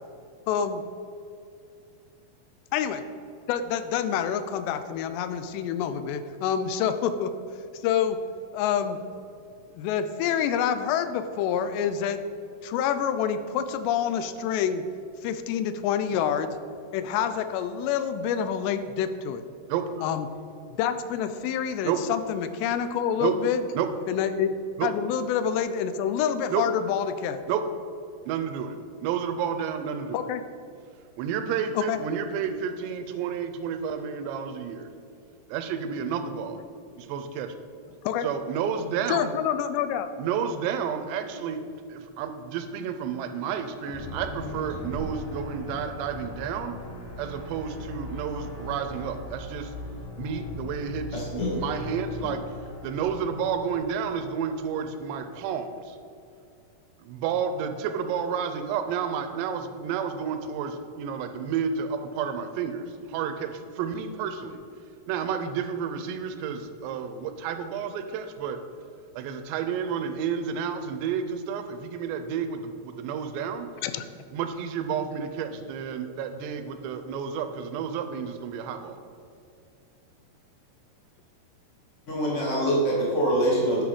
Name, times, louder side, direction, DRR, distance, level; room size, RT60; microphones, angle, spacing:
voice 1, 0.5-0.8 2.7-3.1 3.5-7.4 7.8-8.2 8.5-9.0 9.8-12.2 12.6-14.9 15.2-16.6 16.9-19.4 20.0-20.3 20.7-23.6 24.1-24.5 24.8-27.4 30.1-30.4 31.8-32.0 38.0-38.3 39.1-40.1 73.8-74.1, left 8 dB, 85° left, 11 dB, 2.7 m, -27 dB
voice 2, 19.7-20.1 21.8-22.0 23.2-23.3 23.7-23.9 24.8-24.9 26.5-26.6 27.5-27.6 28.3-30.3 31.2-34.9 35.5-36.6 37.0-37.6 38.2-39.3 40.2-46.7 47.2-49.7 50.2-52.4 52.8-56.0 57.0-64.6 65.1-68.6 69.1-73.7 74.3-79.0, right 7 dB, 85° right, 8 dB, 2.8 m, -31 dB
sound 1, 43.9-55.1, left 1 dB, 25° left, 0.8 m, -39 dB
voice 3, 51.1-51.5 52.2-52.3 82.1-83.8, right 1 dB, 60° left, -5 dB, 0.7 m, -25 dB
9.7 x 6.2 x 5.0 m, 2.4 s
omnidirectional pair, 4.9 m